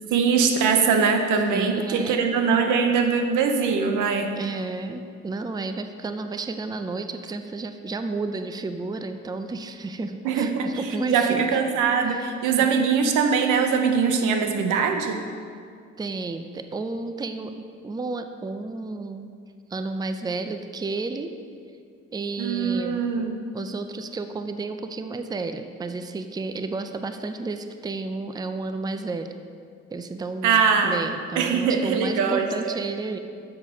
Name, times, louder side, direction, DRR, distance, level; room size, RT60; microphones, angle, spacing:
voice 1, 0.1-4.3 10.2-10.7 11.1-15.2 22.4-23.5 30.4-31.1 31.4-32.8, right 5 dB, 90° right, 5 dB, 0.8 m, -22 dB
voice 2, 1.5-2.3 4.4-11.6 12.1-12.3 12.6-12.8 16.0-17.5 17.8-19.3 19.7-21.3 22.1-23.0 23.5-29.3 29.9-30.6 30.8-33.2, right 3 dB, 15° right, 8 dB, 0.4 m, -31 dB
6.7 x 6.4 x 5.6 m, 2.2 s
cardioid pair, 90°, 30 cm